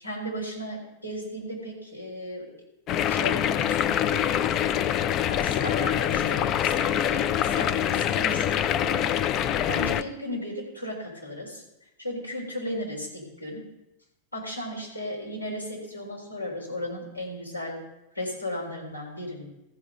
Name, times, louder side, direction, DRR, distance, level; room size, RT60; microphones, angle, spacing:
voice 1, 0.0-2.4 3.0-4.9 5.3-9.4 9.7-11.6 12.0-13.6 14.3-17.8 18.2-19.5, equal, 85° left, -4 dB, 3.7 m, -36 dB
sound 1, 2.9-10.0, left 10 dB, 35° left, 0.4 m, -25 dB
14.0 x 4.9 x 6.6 m, 0.91 s
figure-of-eight pair, 90°, 0 cm